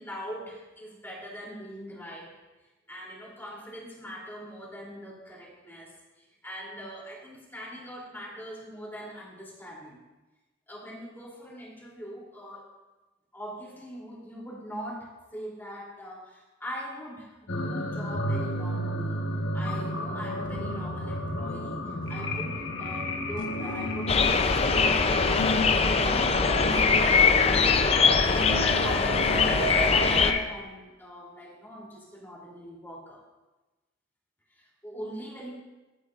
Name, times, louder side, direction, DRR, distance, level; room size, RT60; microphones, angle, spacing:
voice 1, 0.0-2.3 2.9-10.0 10.7-12.7 13.3-19.2 19.5-28.1 28.4-33.2 34.5-35.5, equal, 10° left, -5 dB, 3.1 m, -42 dB
sound 1, 17.5-30.4, left 2 dB, 80° left, 1.2 m, -30 dB
sound 2, 24.1-30.3, left 5 dB, 30° left, 0.5 m, -23 dB
15.5 x 8.1 x 2.5 m, 1.1 s
head